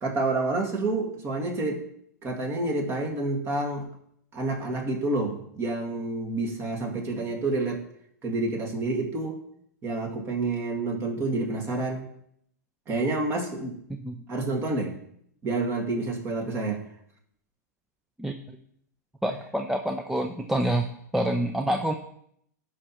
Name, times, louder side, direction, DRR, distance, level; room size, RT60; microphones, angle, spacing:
voice 1, 0.0-1.8 2.2-3.9 4.3-7.8 8.2-9.4 9.8-12.1 12.9-13.8 14.3-15.0 15.4-16.8, right 2 dB, 25° right, 2 dB, 1.9 m, -28 dB
voice 2, 19.2-20.8 21.1-21.9, right 1 dB, 5° right, 4 dB, 0.5 m, -27 dB
13.0 x 5.7 x 3.0 m, 0.70 s
hypercardioid pair, 125°, 10 cm